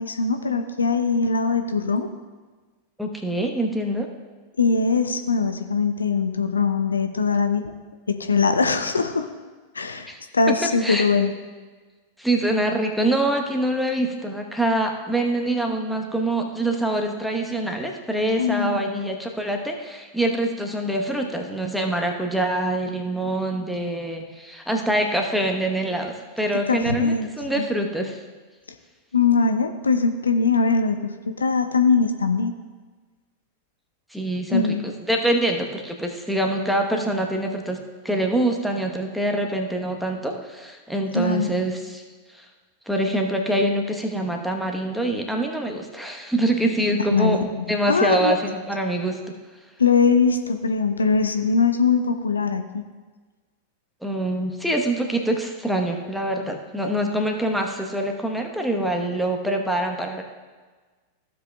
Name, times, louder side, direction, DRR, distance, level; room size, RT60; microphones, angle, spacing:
voice 1, 0.0-2.1 4.6-7.7 8.1-9.3 9.7-11.3 18.4-19.0 26.7-27.3 27.6-27.7 29.1-32.5 34.5-34.9 41.1-41.5 47.1-48.4 49.8-52.8, left 4 dB, 75° left, 8 dB, 0.5 m, -21 dB
voice 2, 3.0-4.1 10.1-10.2 10.5-10.6 10.8-11.1 12.2-28.2 34.1-37.8 38.0-42.0 42.3-42.4 42.9-47.4 47.7-49.3 54.0-60.2, right 1 dB, ahead, 2 dB, 1.0 m, -25 dB
15.0 x 7.7 x 2.3 m, 1.4 s
figure-of-eight pair, 90°, 0 cm